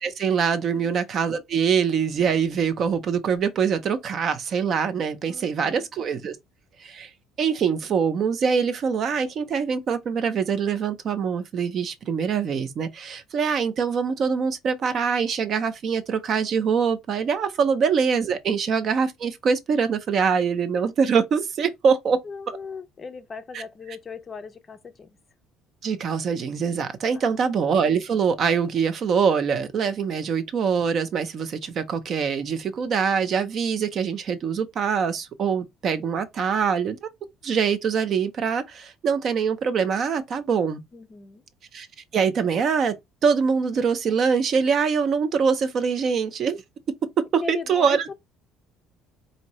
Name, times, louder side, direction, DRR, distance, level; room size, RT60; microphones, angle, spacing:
voice 1, 0.0-6.4 6.8-7.1 7.4-22.2 23.5-23.6 25.8-37.1 37.4-40.8 41.7-41.9 42.1-43.0 43.2-46.6 47.3-48.1, right 6 dB, 35° right, 0.6 m, -24 dB
voice 2, 0.7-1.0 5.3-5.9 22.2-25.1 27.1-27.4 40.9-41.4 47.4-48.1, left 5 dB, 20° left, 0.5 m, -38 dB
4.9 x 2.7 x 3.0 m
cardioid pair, 165°, 0 cm